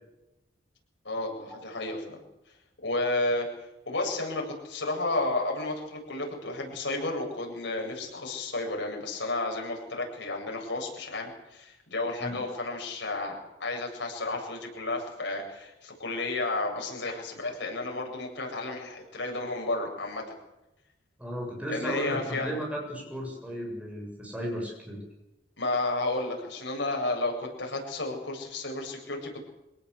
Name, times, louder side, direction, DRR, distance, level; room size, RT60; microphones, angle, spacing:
voice 1, 1.0-2.2 2.8-3.5 3.9-20.2 21.7-22.5 25.6-29.5, left 2 dB, 70° left, 0 dB, 8.0 m, -32 dB
voice 2, 21.2-25.0, equal, 5° right, -1 dB, 7.3 m, -35 dB
26.0 x 18.0 x 8.4 m, 0.94 s
head